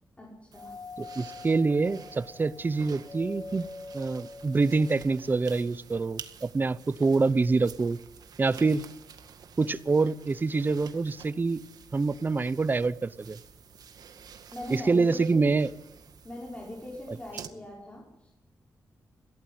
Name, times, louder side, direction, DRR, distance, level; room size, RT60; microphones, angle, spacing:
voice 1, 0.2-0.8 14.5-15.6 16.2-18.3, left 1 dB, 20° left, -3 dB, 5.2 m, -41 dB
sound 1, 0.5-17.5, right 7 dB, 80° right, 2.0 m, -50 dB
Doorbell, 0.6-5.4, left 3 dB, 35° left, 1.0 m, -44 dB
voice 2, 1.0-3.7 3.9-8.0 8.4-8.9 9.6-11.6 11.9-13.4 14.7-15.7, right 3 dB, 30° right, 17 dB, 0.8 m, -26 dB
23.0 x 16.5 x 9.5 m, 0.91 s
wide cardioid pair, 130°, 7 cm